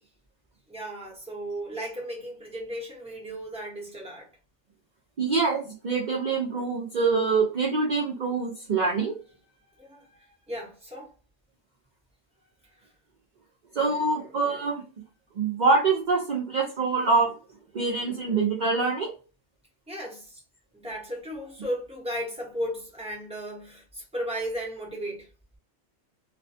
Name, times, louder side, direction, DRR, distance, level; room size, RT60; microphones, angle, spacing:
voice 1, 0.7-4.3 9.8-11.1 19.9-20.4 20.7-25.3, equal, 5° right, 0.9 m, -35 dB
voice 2, 5.2-9.2 13.7-14.8 15.4-17.3 17.7-19.1, right 4 dB, 50° right, 0.5 m, -25 dB
2.5 x 2.2 x 2.6 m
omnidirectional pair, 1.4 m